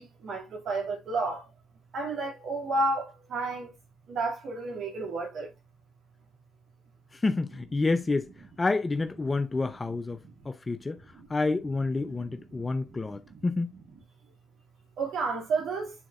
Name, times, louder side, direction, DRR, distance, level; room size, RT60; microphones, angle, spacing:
voice 1, 0.0-1.4 1.9-3.7 4.1-5.5 15.0-15.9, right 3 dB, 65° right, 2.5 m, -31 dB
voice 2, 7.2-8.3 8.6-10.2 10.5-11.0 11.3-13.7, left 3 dB, 30° left, 0.7 m, -28 dB
9.8 x 3.9 x 2.5 m
supercardioid pair, 60°, 0 cm